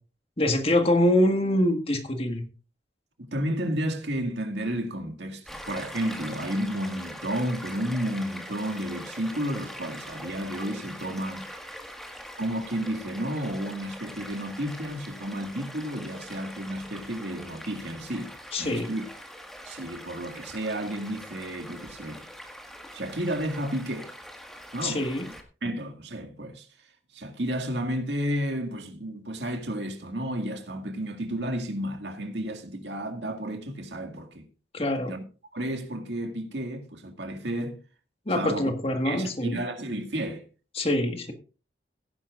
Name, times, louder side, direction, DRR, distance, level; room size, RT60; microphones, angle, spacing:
voice 1, 0.4-2.4 18.5-18.9 24.8-25.3 34.7-35.2 38.2-39.6 40.7-41.3, left 1 dB, 35° left, 1.7 m, -24 dB
voice 2, 3.2-11.5 12.4-18.3 18.6-19.1 19.6-22.3 22.9-24.1 24.7-25.4 25.6-26.7 27.1-34.5 35.1-35.2 35.5-37.8 38.3-38.7 39.0-40.4, equal, 80° right, 2.0 m, -32 dB
Stream, 5.5-25.4, equal, ahead, 1.8 m, -43 dB
17.0 x 10.0 x 2.5 m
head